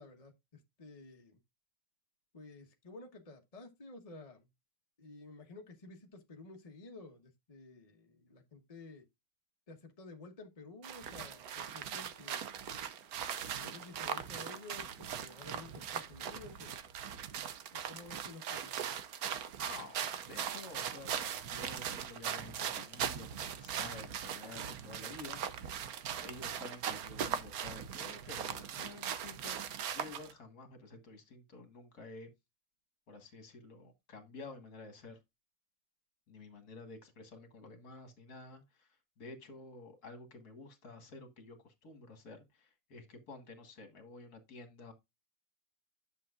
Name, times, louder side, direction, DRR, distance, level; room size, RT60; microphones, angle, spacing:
voice 1, 0.0-1.4 2.3-4.5 5.0-9.1 9.7-12.5 13.6-16.8 17.7-18.8, left 3 dB, 30° left, 0.8 m, -52 dB
sound 1, 10.8-30.3, right 8 dB, 60° right, 1.0 m, -40 dB
voice 2, 19.6-25.8 26.2-29.6 29.9-32.3 33.1-35.2 36.3-38.9 39.2-44.9, left 3 dB, 50° left, 1.9 m, -51 dB
10.5 x 6.7 x 2.4 m
omnidirectional pair, 2.3 m